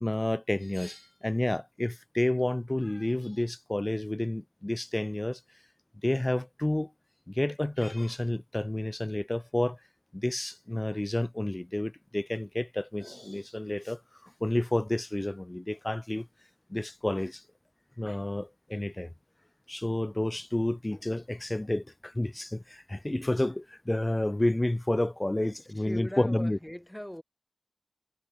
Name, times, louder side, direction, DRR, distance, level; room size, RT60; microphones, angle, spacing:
voice 1, 0.0-5.4 6.0-6.9 7.4-9.8 10.1-14.0 14.4-16.3 16.7-17.4 18.0-19.1 19.7-21.8 22.2-22.6 22.9-26.6, left 1 dB, 30° left, 0.4 m, -30 dB
voice 2, 25.7-27.2, equal, 10° left, 6.2 m, -39 dB
wide cardioid pair, 50°, 0 cm